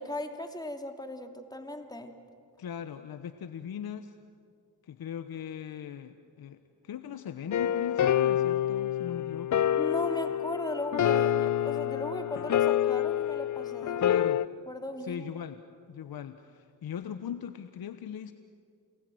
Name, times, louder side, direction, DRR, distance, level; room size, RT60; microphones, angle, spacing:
voice 1, 0.0-2.1 9.8-14.2 14.7-15.3, left 1 dB, 10° left, 5 dB, 2.7 m, -37 dB
voice 2, 2.6-4.1 4.8-9.7 14.0-14.4 15.0-15.6 15.9-18.3, left 8 dB, 60° left, 10 dB, 1.1 m, -39 dB
sound 1, 7.5-14.4, left 10 dB, 45° left, 0.6 m, -27 dB
29.0 x 20.5 x 7.8 m, 2.2 s
supercardioid pair, 55°, 41 cm